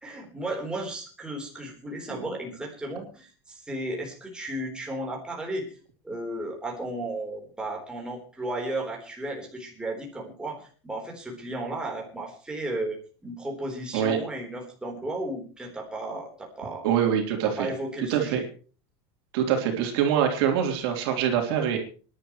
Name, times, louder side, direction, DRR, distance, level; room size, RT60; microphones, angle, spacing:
voice 1, 0.0-5.7 6.0-16.9 17.4-18.5, right 1 dB, 5° right, -1 dB, 3.8 m, -34 dB
voice 2, 16.8-17.7 18.1-18.4 19.3-21.8, right 9 dB, 70° right, 3 dB, 3.5 m, -24 dB
27.0 x 11.0 x 3.1 m, 0.38 s
supercardioid pair, 155°, 14 cm